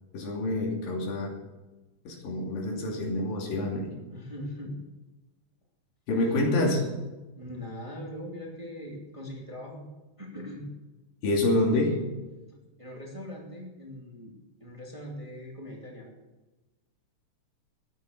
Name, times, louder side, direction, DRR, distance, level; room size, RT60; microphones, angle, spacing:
voice 1, 0.1-1.3 2.1-3.9 6.1-6.8 11.2-12.0, left 2 dB, 90° left, 0 dB, 4.6 m, -27 dB
voice 2, 4.1-4.8 7.4-9.8 10.2-10.7 12.8-14.3 14.6-16.1, equal, 10° right, -1 dB, 2.1 m, -40 dB
14.0 x 10.5 x 6.6 m, 1.1 s
omnidirectional pair, 3.9 m